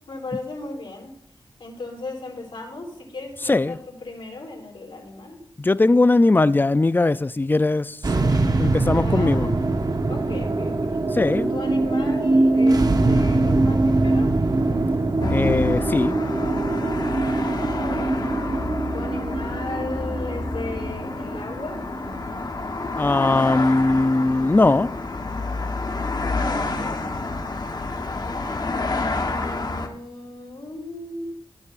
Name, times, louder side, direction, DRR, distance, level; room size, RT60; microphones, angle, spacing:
voice 1, 0.1-1.1 1.6-5.4 8.2-9.6 10.1-11.0 11.5-12.8 13.1-14.4 17.5-18.2 18.9-21.8 26.2-28.5 29.2-31.3, left 2 dB, 75° left, 3.6 m, -36 dB
voice 2, 5.6-8.0 8.6-9.5 11.1-11.5 15.3-16.1 23.0-24.9, left 2 dB, 25° left, 0.4 m, -19 dB
sound 1, 8.0-24.4, right 2 dB, 45° right, 0.9 m, -23 dB
sound 2, 15.2-29.9, left 3 dB, 50° left, 1.1 m, -29 dB
14.5 x 8.2 x 2.5 m
cardioid pair, 60°, 9 cm